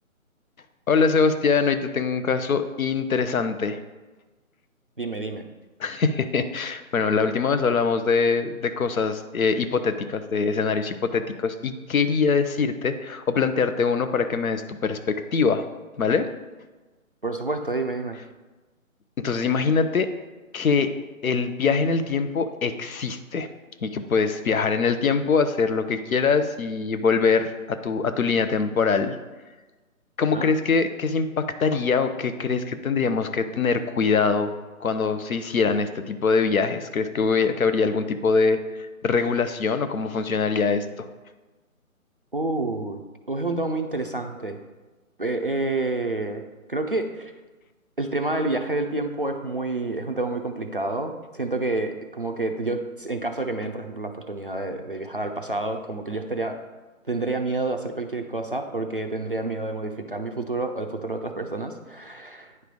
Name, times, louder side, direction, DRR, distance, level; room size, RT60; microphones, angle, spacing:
voice 1, 0.9-3.8 5.8-15.6 16.0-16.3 19.2-20.1 20.5-20.9 21.2-23.5 23.8-29.1 30.2-34.5 34.8-38.6 39.0-41.1, left 5 dB, 70° left, 10 dB, 0.8 m, -23 dB
voice 2, 5.0-5.5 17.2-18.2 30.3-30.5 42.3-43.0 43.3-44.6 45.2-46.4 46.7-47.3 48.0-56.6 57.1-62.5, right 2 dB, 40° right, 5 dB, 0.4 m, -28 dB
9.5 x 3.3 x 5.2 m, 1.2 s
figure-of-eight pair, 165°, 43 cm